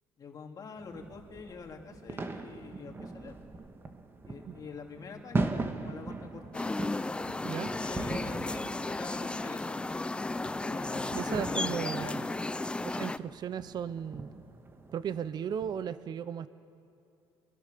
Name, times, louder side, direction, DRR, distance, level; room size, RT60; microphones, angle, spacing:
voice 1, 0.2-3.3 4.2-7.1 7.7-9.9 10.6-12.4, left 5 dB, 35° left, 2 dB, 2.7 m, -45 dB
sound 1, 0.8-15.9, right 3 dB, 25° right, 1.5 m, -40 dB
sound 2, 6.5-13.2, left 2 dB, 10° left, 0.5 m, -34 dB
voice 2, 11.1-12.2 12.8-14.3 14.9-16.5, right 8 dB, 45° right, 14 dB, 0.7 m, -36 dB
26.0 x 23.0 x 6.7 m, 2.6 s
cardioid pair, 120°, 10 cm